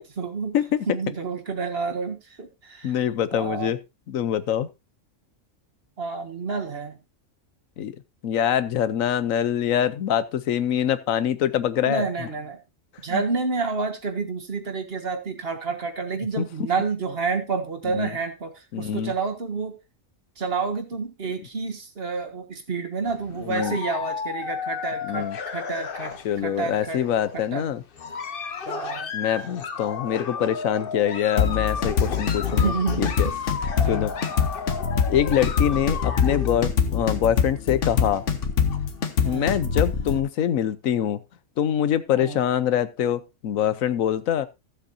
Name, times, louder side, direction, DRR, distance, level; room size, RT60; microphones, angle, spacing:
voice 1, 0.0-0.5 0.9-3.0 3.3-3.7 6.0-7.0 11.8-12.6 13.0-19.8 20.4-26.1 26.4-27.0 27.3-27.6 28.6-29.1 32.5-33.4 33.8-34.0 39.2-39.5 42.1-42.4, right 4 dB, 50° right, 5 dB, 1.7 m, -29 dB
voice 2, 0.5-0.9 2.8-3.8 4.1-4.7 7.8-7.9 8.2-12.0 13.1-13.2 16.4-16.5 17.9-18.1 18.7-19.1 23.4-23.8 25.1-25.4 26.2-27.8 29.1-32.7 33.0-33.3 33.9-34.1 35.1-38.2 39.2-41.2 41.6-44.5, left 10 dB, 90° left, 14 dB, 1.2 m, -24 dB
sound 1, 23.1-26.6 26.9-27.4 27.9-36.5, left 6 dB, 50° left, 1.0 m, -33 dB
sound 2, 31.4-40.2, left 6 dB, 65° left, 1.5 m, -24 dB
14.5 x 7.8 x 2.7 m, 0.24 s
omnidirectional pair, 1.4 m